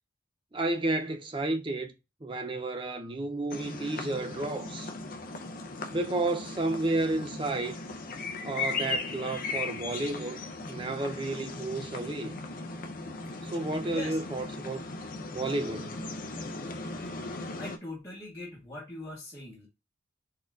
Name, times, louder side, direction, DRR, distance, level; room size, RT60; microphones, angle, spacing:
voice 1, 0.5-1.9 2.2-4.9 5.9-7.8 8.4-10.4 10.7-12.4 13.4-14.9 15.3-16.0, right 2 dB, 25° right, 0.5 m, -31 dB
sound 1, 3.5-17.8, left 3 dB, 45° left, 0.5 m, -38 dB
voice 2, 17.6-19.7, left 2 dB, 15° left, 1.2 m, -41 dB
4.1 x 3.8 x 2.3 m
head